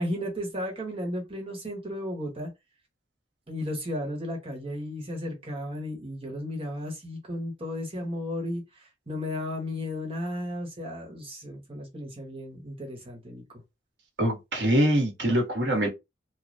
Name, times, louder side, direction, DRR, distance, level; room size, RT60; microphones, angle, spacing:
voice 1, 0.0-2.5 3.5-13.6, left 1 dB, 30° right, 1.2 m, -34 dB
voice 2, 14.2-15.9, equal, 70° right, 1.2 m, -24 dB
3.2 x 2.2 x 2.6 m
head